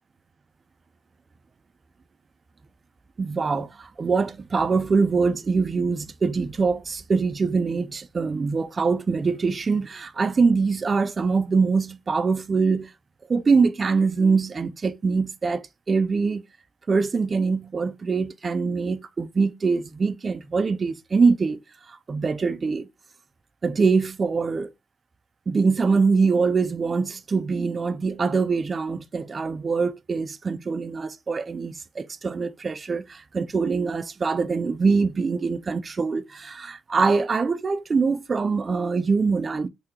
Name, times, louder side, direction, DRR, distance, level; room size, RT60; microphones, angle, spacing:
voice 1, 3.2-12.9 13.3-16.4 16.9-21.6 21.9-22.9 23.6-24.7 25.5-39.7, right 4 dB, 35° right, 0.4 m, -23 dB
3.7 x 2.7 x 2.8 m
cardioid pair, 90°, 0 cm